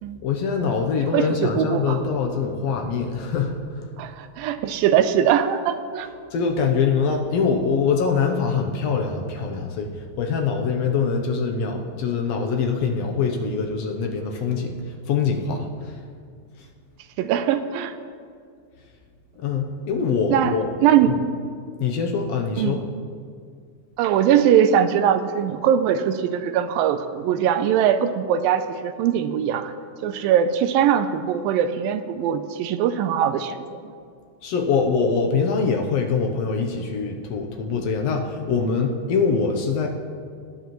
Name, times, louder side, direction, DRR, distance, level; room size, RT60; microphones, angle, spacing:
voice 1, 0.2-3.9 6.3-16.0 19.4-20.7 21.1-21.2 21.8-22.8 34.4-39.9, left 5 dB, 80° left, 2 dB, 1.4 m, -24 dB
voice 2, 1.1-2.0 4.0-6.1 17.2-17.9 20.3-21.2 22.6-22.8 24.0-29.7 30.0-33.6 33.8-33.9, right 9 dB, 85° right, 10 dB, 2.3 m, -21 dB
19.5 x 10.0 x 3.1 m, 2.2 s
omnidirectional pair, 4.1 m